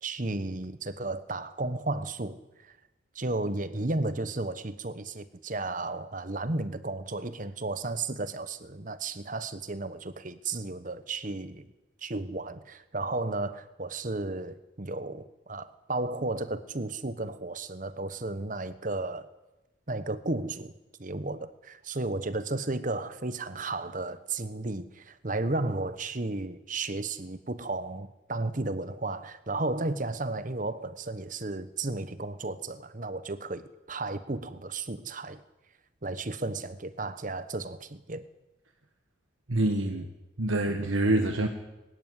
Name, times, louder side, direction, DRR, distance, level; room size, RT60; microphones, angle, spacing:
voice 1, 0.0-2.7 3.1-11.7 12.0-19.3 19.9-20.7 21.0-35.4 36.0-38.2, right 2 dB, 40° right, 13 dB, 1.1 m, -33 dB
voice 2, 39.5-40.1 40.4-41.5, right 1 dB, 75° right, 4 dB, 1.6 m, -26 dB
22.0 x 13.0 x 9.8 m, 1.0 s
head